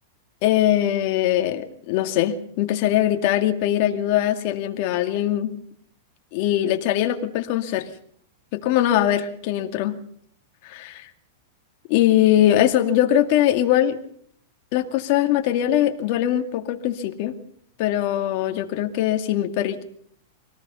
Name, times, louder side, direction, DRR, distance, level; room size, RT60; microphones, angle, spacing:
voice 1, 0.4-5.6 6.3-7.9 8.5-10.0 10.6-11.1 11.9-14.0 14.7-17.4 17.8-19.8, left 12 dB, 50° left, 6 dB, 2.3 m, -21 dB
25.0 x 18.5 x 5.7 m, 0.64 s
supercardioid pair, 145°, 0 cm